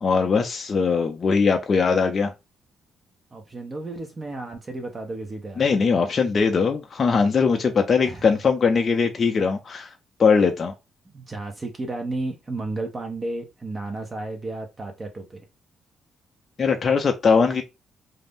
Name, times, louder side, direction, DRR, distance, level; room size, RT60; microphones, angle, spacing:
voice 1, 0.0-2.3 5.6-9.9 10.2-10.7 16.6-17.6, left 5 dB, 40° left, 0.4 m, -20 dB
voice 2, 3.3-5.7 8.0-8.3 11.0-15.4, right 2 dB, 30° right, 0.6 m, -33 dB
2.5 x 2.0 x 3.4 m
cardioid pair, 90°, 0 cm